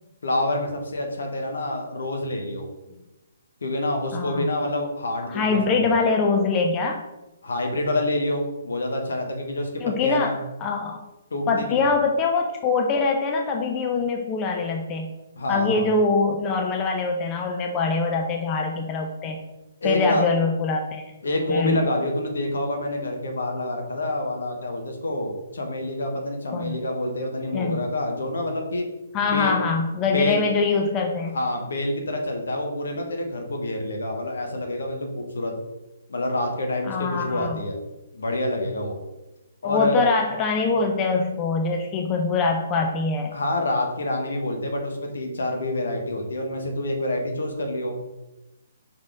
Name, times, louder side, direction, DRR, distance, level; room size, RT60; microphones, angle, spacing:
voice 1, 0.2-2.7 3.6-5.9 7.4-10.4 11.3-11.9 15.4-15.9 19.8-20.3 21.2-28.9 29.2-29.5 30.0-30.4 31.3-35.5 36.1-37.8 38.1-39.0 39.6-40.1 43.3-48.0, left 1 dB, 60° left, 3 dB, 1.2 m, -27 dB
voice 2, 4.1-4.5 5.3-7.0 9.8-11.0 11.5-15.1 15.5-19.4 19.8-21.0 21.5-21.9 26.5-26.8 27.5-27.8 29.1-31.4 36.8-37.6 39.6-43.3, left 4 dB, 20° left, 2 dB, 0.5 m, -23 dB
5.2 x 5.1 x 3.5 m, 1.0 s
figure-of-eight pair, 130°, 0 cm